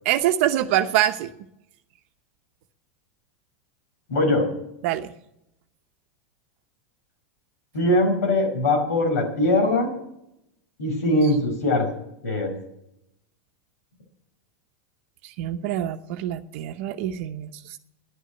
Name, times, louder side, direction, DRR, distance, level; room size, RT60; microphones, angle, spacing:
voice 1, 0.0-1.3 4.8-5.1 15.2-17.8, right 12 dB, 60° right, 6 dB, 0.8 m, -25 dB
voice 2, 4.1-4.5 7.7-9.9 10.8-11.9 12.2-12.6, left 1 dB, 90° left, 2 dB, 5.2 m, -21 dB
11.0 x 8.3 x 9.9 m, 0.82 s
supercardioid pair, 130°, 8 cm